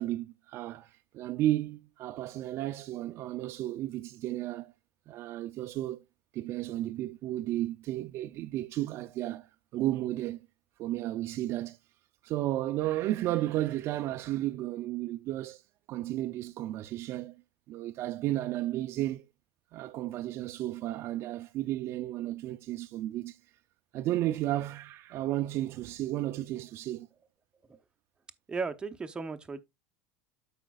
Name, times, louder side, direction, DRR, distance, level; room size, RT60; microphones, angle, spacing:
voice 1, 0.0-4.7 5.1-6.0 6.3-10.5 10.8-11.8 12.2-15.6 15.9-17.4 17.7-19.3 19.7-23.4 23.9-27.1, right 14 dB, 45° right, 0.4 m, -33 dB
voice 2, 28.5-29.6, right 4 dB, 15° right, 0.7 m, -35 dB
13.0 x 5.0 x 2.3 m
supercardioid pair, 130°, 6 cm